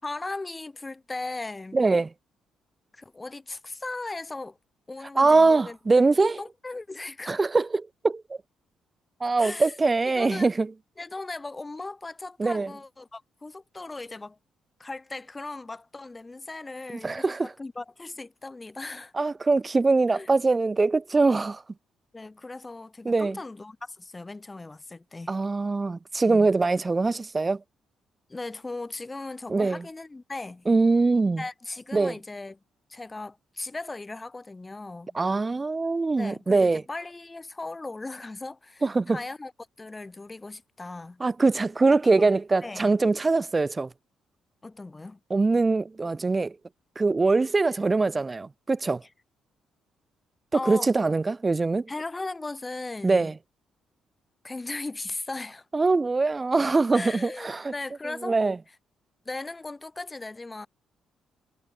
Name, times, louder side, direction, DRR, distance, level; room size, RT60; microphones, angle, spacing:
voice 1, 0.0-1.8 2.9-4.6 4.9-5.8 6.4-7.4 9.4-9.7 10.0-10.5 11.0-14.4 14.8-19.1 20.1-20.3 22.1-25.3 26.2-26.5 28.3-30.7 31.4-32.6 32.9-35.2 36.2-39.5 39.8-41.2 41.9-42.3 42.6-43.0 44.6-45.2 50.5-50.9 51.9-53.3 54.4-55.6 56.9-58.4 59.2-60.7, left 3 dB, 20° left, 4.7 m, -38 dB
voice 2, 1.7-2.1 5.2-6.4 7.3-8.4 9.2-10.7 12.4-12.7 17.0-17.5 19.1-21.6 23.0-23.4 25.3-27.6 29.5-29.8 30.7-31.4 31.9-32.1 35.1-36.8 38.8-39.2 41.2-43.9 45.3-46.6 47.0-49.0 50.7-51.9 53.0-53.3 55.7-57.7 58.2-58.6, right 3 dB, 25° right, 0.5 m, -23 dB
cardioid pair, 90°, 0 cm